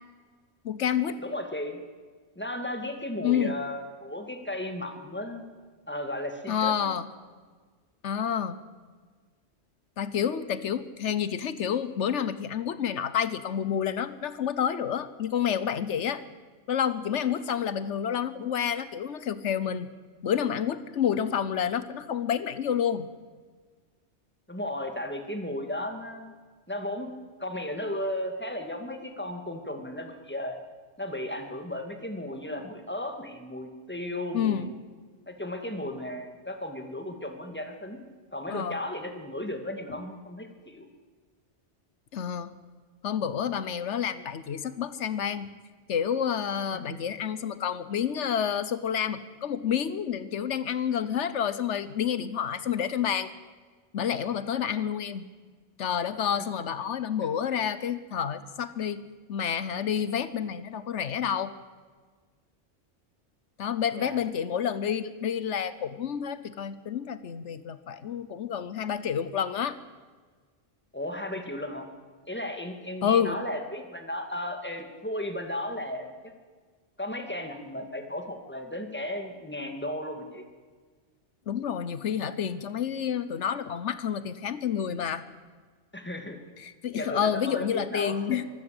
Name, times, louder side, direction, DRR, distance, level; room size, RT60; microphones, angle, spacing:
voice 1, 0.6-1.2 3.2-3.5 6.5-7.1 8.0-8.6 10.0-16.2 16.7-19.9 20.2-23.1 34.3-34.7 38.5-38.8 42.1-42.5 43.0-45.5 45.9-53.3 53.9-55.3 55.8-59.0 59.3-61.5 63.6-69.8 73.0-73.4 81.5-85.2 86.6-88.4, left 8 dB, 80° left, 14 dB, 1.2 m, -29 dB
voice 2, 1.2-1.8 2.4-5.4 5.9-6.9 24.5-26.3 26.7-27.1 27.4-30.6 31.0-34.7 35.3-38.0 38.3-40.9 54.6-54.7 57.2-57.3 64.0-64.2 70.9-71.9 72.3-76.1 77.0-80.4 85.9-86.4 86.9-88.4, left 1 dB, 10° left, 5 dB, 2.5 m, -35 dB
24.5 x 15.5 x 7.9 m, 1.5 s
omnidirectional pair, 1.2 m